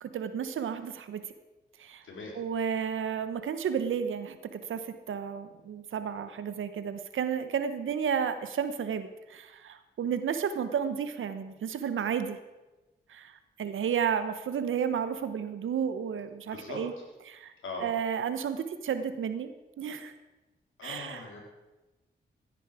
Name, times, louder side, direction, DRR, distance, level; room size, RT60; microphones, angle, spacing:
voice 1, 0.0-1.2 1.8-2.0 2.3-12.4 13.1-16.9 17.3-17.5 17.8-19.5 19.8-20.1 20.8-21.2, right 7 dB, 75° right, 10 dB, 1.1 m, -32 dB
voice 2, 2.0-2.4 16.5-17.0 17.6-17.9 20.8-21.4, left 2 dB, 75° left, 0 dB, 3.8 m, -40 dB
16.0 x 9.9 x 5.0 m, 1.1 s
supercardioid pair, 45°, 21 cm